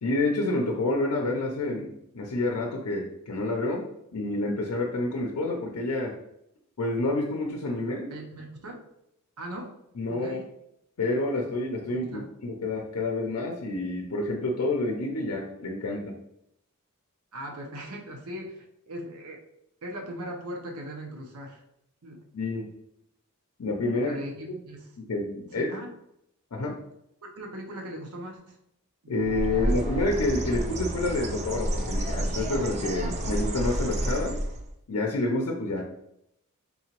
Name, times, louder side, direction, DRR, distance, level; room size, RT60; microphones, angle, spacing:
voice 1, 0.0-3.9 4.1-6.1 6.8-8.1 10.0-10.4 11.0-16.1 22.3-22.7 23.6-24.1 24.5-24.6 25.0-25.7 26.5-26.7 29.1-34.4 34.9-35.8, left 2 dB, 80° left, 0 dB, 0.6 m, -28 dB
voice 2, 8.1-8.8 9.4-9.7 10.1-10.5 11.9-12.3 17.3-19.4 19.8-21.6 22.0-22.2 23.9-24.9 25.5-25.9 27.4-28.6 29.0-29.2 29.5-29.8, equal, 80° right, 1 dB, 0.8 m, -39 dB
Bird, 29.2-34.7, right 1 dB, 30° right, 0.4 m, -30 dB
3.9 x 2.9 x 2.9 m, 0.78 s
head